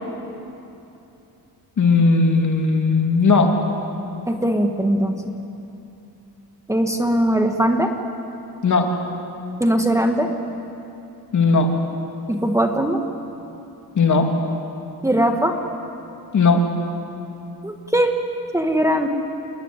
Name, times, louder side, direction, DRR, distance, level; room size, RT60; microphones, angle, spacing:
voice 1, 1.8-3.5 8.6-8.9 11.3-11.7 13.9-14.3 16.3-16.6, left 4 dB, 50° left, 3 dB, 2.8 m, -17 dB
voice 2, 4.3-5.3 6.7-7.9 9.6-10.3 12.3-13.0 15.0-15.6 17.6-18.1 18.5-19.1, right 1 dB, 10° right, 3 dB, 1.5 m, -20 dB
27.5 x 20.5 x 9.8 m, 2.8 s
wide cardioid pair, 155°, 38 cm